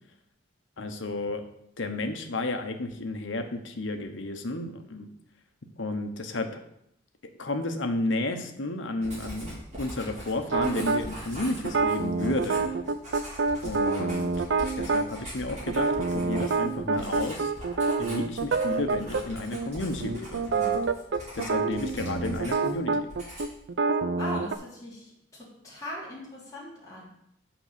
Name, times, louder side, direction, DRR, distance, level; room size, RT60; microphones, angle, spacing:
voice 1, 0.8-1.4 1.8-5.1 5.8-6.6 7.4-12.7 13.6-14.3 14.8-17.5 18.0-20.8 21.3-23.1, left 2 dB, 80° left, 6 dB, 0.9 m, -32 dB
Writing, 9.0-22.8 23.1-23.6, equal, 35° right, 3.2 m, -42 dB
sound 1, 10.5-11.0 11.6-15.1 15.7-19.2 19.5-19.7 20.0-24.6, right 4 dB, 70° right, 0.5 m, -27 dB
voice 2, 24.2-27.0, left 1 dB, 20° left, -7 dB, 3.0 m, -39 dB
6.0 x 5.3 x 6.8 m, 0.78 s
head